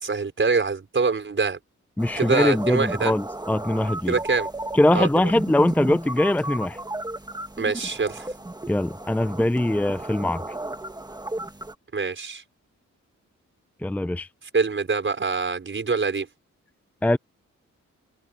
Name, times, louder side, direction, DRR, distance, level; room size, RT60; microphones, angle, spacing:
voice 1, 0.0-1.6 2.2-3.1 4.1-4.5 4.9-5.3 7.6-8.3 11.9-12.4 14.5-16.3, right 4 dB, 40° right, 5.3 m, -24 dB
voice 2, 2.0-4.1 4.7-6.8 8.7-10.4 13.8-14.3 17.0-17.2, left 1 dB, 5° left, 0.6 m, -22 dB
sound 1, 2.0-11.7, right 2 dB, 15° right, 1.9 m, -34 dB
cardioid pair, 90°, 30 cm